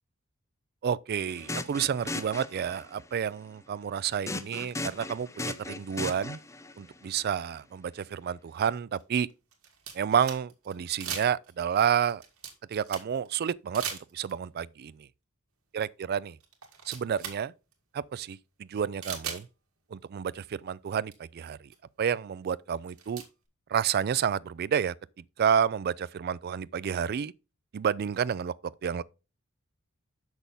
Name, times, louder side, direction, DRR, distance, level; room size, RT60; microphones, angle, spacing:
voice 1, 0.8-6.4 6.8-9.3 9.9-12.2 12.7-15.1 15.7-16.3 16.9-17.5 17.9-19.5 19.9-21.7 22.0-23.2 23.7-24.9 25.4-27.3 27.7-28.5 28.8-29.0, right 8 dB, 45° right, 0.3 m, -30 dB
sound 1, 1.3-3.0 4.3-6.7, left 2 dB, 15° left, 0.5 m, -37 dB
sound 2, 7.9-8.0 8.9-10.7 11.0-11.6 12.0-13.3 13.7-14.5 15.9-16.0 16.4-17.4 17.7-17.8 19.0-19.4 20.7-20.8 21.1-21.2 21.7-21.8 22.7-23.3, right 7 dB, 70° right, 1.9 m, -39 dB
6.8 x 6.2 x 3.8 m
head